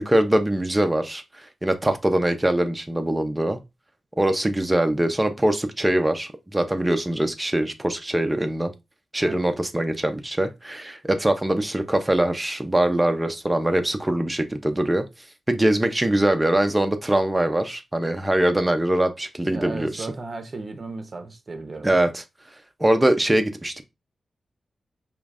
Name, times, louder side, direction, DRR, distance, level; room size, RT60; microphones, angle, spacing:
voice 1, 0.0-3.6 4.2-8.7 9.1-15.0 15.5-20.1 21.8-22.2 22.8-23.8, right 1 dB, 10° right, 0.6 m, -22 dB
voice 2, 19.4-22.0, right 3 dB, 40° right, 0.9 m, -35 dB
5.0 x 3.1 x 2.4 m
wide cardioid pair, 125°, 0 cm